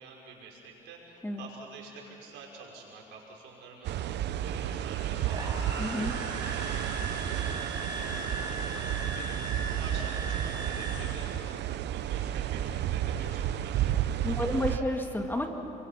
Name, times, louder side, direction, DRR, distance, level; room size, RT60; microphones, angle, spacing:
voice 1, 0.0-11.4 11.8-14.8, right 4 dB, 85° right, -2 dB, 5.5 m, -48 dB
sound 1, 3.8-14.8, right 11 dB, 70° right, 0.8 m, -32 dB
sound 2, 5.2-11.5, right 2 dB, 25° right, 7.3 m, -38 dB
voice 2, 5.8-6.1 14.2-15.5, left 1 dB, 10° left, 3 dB, 2.4 m, -30 dB
28.5 x 23.5 x 5.8 m, 2.9 s
supercardioid pair, 85°, 19 cm